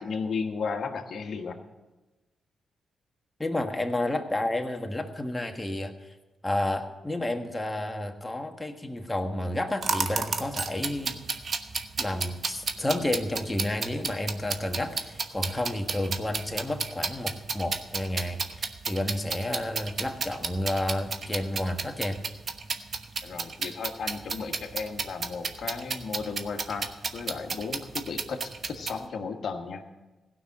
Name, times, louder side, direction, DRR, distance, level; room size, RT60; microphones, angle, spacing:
voice 1, 0.0-1.6 23.2-29.8, left 5 dB, 65° left, 5 dB, 1.4 m, -34 dB
voice 2, 3.4-6.1 6.4-11.2 12.0-22.2, left 1 dB, 15° left, 5 dB, 1.5 m, -31 dB
sound 1, 9.8-29.0, right 4 dB, 55° right, 1.0 m, -32 dB
16.5 x 5.8 x 7.4 m, 1.1 s
supercardioid pair, 50°, 0 cm